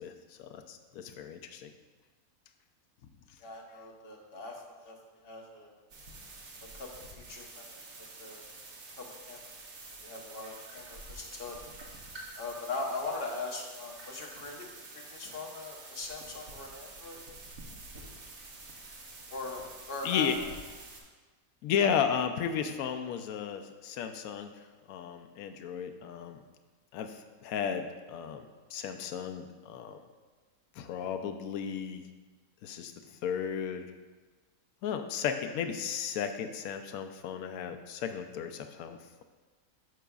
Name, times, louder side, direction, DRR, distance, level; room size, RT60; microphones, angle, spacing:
voice 1, 0.0-1.7 20.0-20.4 21.6-26.4 26.9-30.0 30.7-32.0 32.6-33.9 34.8-39.2, left 7 dB, 75° left, 7 dB, 1.0 m, -34 dB
voice 2, 3.4-5.0 5.2-5.7 6.7-6.9 7.1-8.5 9.0-9.4 10.0-11.6 12.4-14.7 14.9-17.2 19.3-20.3, left 3 dB, 45° left, 0 dB, 1.1 m, -40 dB
sound 1, 5.9-21.0, right 3 dB, 70° right, 1.4 m, -48 dB
sound 2, 10.4-11.4 11.7-12.8 13.2-13.3 14.0-14.9 15.3-15.9, right 1 dB, 30° right, 1.3 m, -51 dB
12.5 x 4.9 x 2.3 m, 1.3 s
omnidirectional pair, 1.6 m